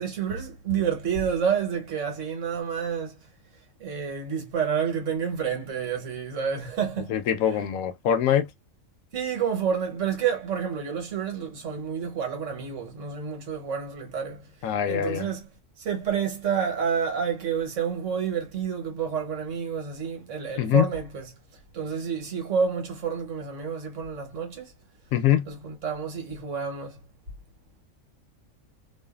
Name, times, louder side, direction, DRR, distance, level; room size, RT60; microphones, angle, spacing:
voice 1, 0.0-3.2 3.8-7.1 7.5-7.6 9.1-14.5 14.8-15.5 15.8-21.3 21.7-24.7 25.5-27.0, right 7 dB, 65° right, 1.3 m, -29 dB
voice 2, 7.1-8.5 14.6-15.3 20.6-20.9 25.1-25.5, left 10 dB, 90° left, 1.0 m, -23 dB
2.5 x 2.5 x 2.3 m
omnidirectional pair, 1.4 m